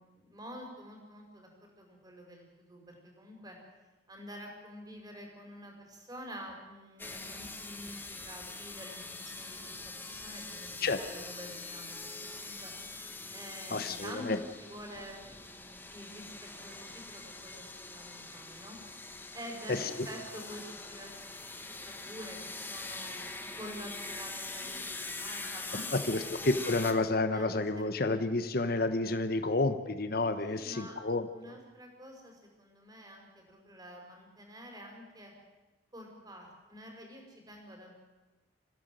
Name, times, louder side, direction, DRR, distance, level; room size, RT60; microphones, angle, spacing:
voice 1, 0.0-1.5 1.8-3.6 4.1-12.0 12.3-12.7 13.3-18.8 19.3-20.6 20.9-21.4 21.9-23.1 23.6-26.4 27.3-27.9 30.4-31.0 31.3-35.3 35.9-37.9, equal, 25° right, 2 dB, 5.3 m, -48 dB
sound 1, 7.0-26.9, left 3 dB, 10° left, 1.8 m, -43 dB
voice 2, 13.7-14.4 19.7-19.8 25.7-31.6, left 2 dB, 55° left, 9 dB, 1.3 m, -30 dB
26.5 x 15.5 x 7.8 m, 1.1 s
head